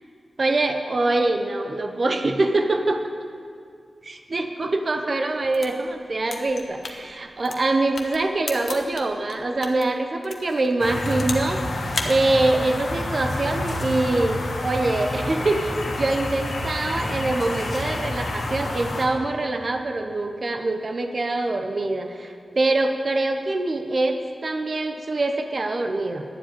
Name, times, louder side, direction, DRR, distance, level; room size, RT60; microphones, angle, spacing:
voice 1, 0.4-3.0 4.0-26.2, right 2 dB, 40° right, 5 dB, 0.8 m, -24 dB
sound 1, 5.3-9.8 10.2-11.6 11.9-12.2, left 3 dB, 55° left, 1.2 m, -34 dB
sound 2, 10.8-19.1, left 1 dB, 75° left, 1.8 m, -29 dB
11.5 x 7.7 x 9.0 m, 2.3 s
wide cardioid pair, 145°, 0 cm